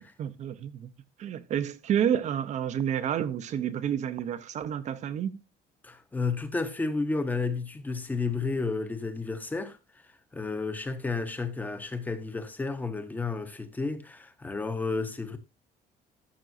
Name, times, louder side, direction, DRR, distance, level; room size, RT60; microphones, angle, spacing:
voice 1, 0.2-0.9 1.2-5.4, right 9 dB, 45° right, 0.7 m, -29 dB
voice 2, 5.8-9.8 10.3-15.4, left 3 dB, 10° left, 0.8 m, -31 dB
14.0 x 6.6 x 2.6 m
cardioid pair, 180°, 17 cm